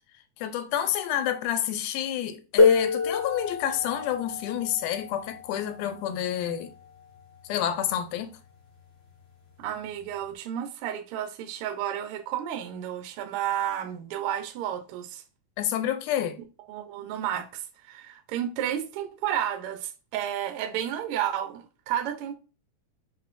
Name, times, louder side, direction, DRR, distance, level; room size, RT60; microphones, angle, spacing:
voice 1, 0.4-6.7 7.4-8.3 15.6-16.4, left 10 dB, 85° left, 2.2 m, -29 dB
sound 1, 2.6-8.0 9.1-9.2 10.0-10.2, left 4 dB, 35° left, 1.5 m, -27 dB
voice 2, 9.6-15.2 16.7-22.3, right 10 dB, 75° right, 1.3 m, -32 dB
6.5 x 3.2 x 2.5 m
omnidirectional pair, 3.5 m